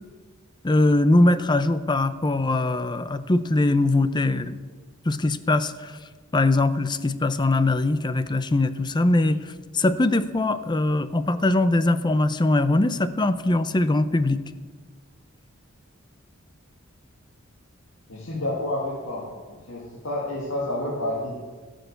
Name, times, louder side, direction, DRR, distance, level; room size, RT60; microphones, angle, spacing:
voice 1, 0.6-4.6 5.1-6.0 6.3-14.4, left 2 dB, 20° left, 13 dB, 0.5 m, -22 dB
voice 2, 18.1-21.4, left 1 dB, 75° left, -5 dB, 2.2 m, -30 dB
17.0 x 6.5 x 6.7 m, 1.4 s
head